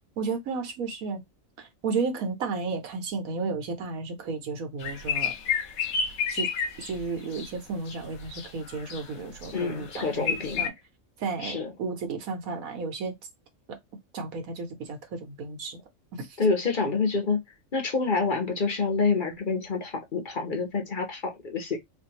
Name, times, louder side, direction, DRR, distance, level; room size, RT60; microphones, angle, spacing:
voice 1, 0.2-1.2 1.6-5.3 6.3-6.5 6.8-10.7 11.2-13.1 13.7-13.8 14.1-15.8 16.1-16.3, right 4 dB, 90° right, 1.4 m, -33 dB
sound 1, 4.8-7.5 7.9-9.1 9.3-10.7, left 6 dB, 85° left, 1.2 m, -31 dB
voice 2, 9.5-10.6 11.4-11.7 16.4-17.4 17.7-21.8, left 4 dB, 40° left, 1.0 m, -27 dB
4.1 x 2.6 x 2.9 m
omnidirectional pair, 1.4 m